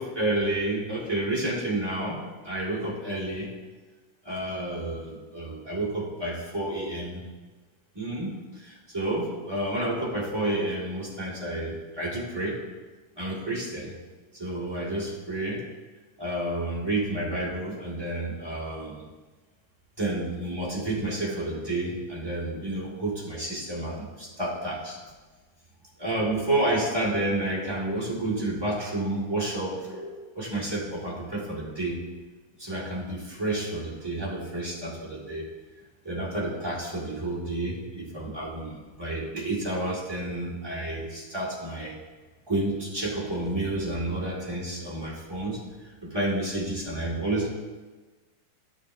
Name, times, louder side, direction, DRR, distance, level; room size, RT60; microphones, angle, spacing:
voice 1, 0.0-3.5 4.2-7.2 7.9-12.6 13.2-13.9 14.3-15.6 16.2-19.0 20.0-25.0 26.0-32.0 32.6-35.4 36.0-42.0 42.5-45.6 46.0-47.5, right 1 dB, 15° right, -7 dB, 0.9 m, -30 dB
12.5 x 7.9 x 2.6 m, 1.3 s
omnidirectional pair, 3.8 m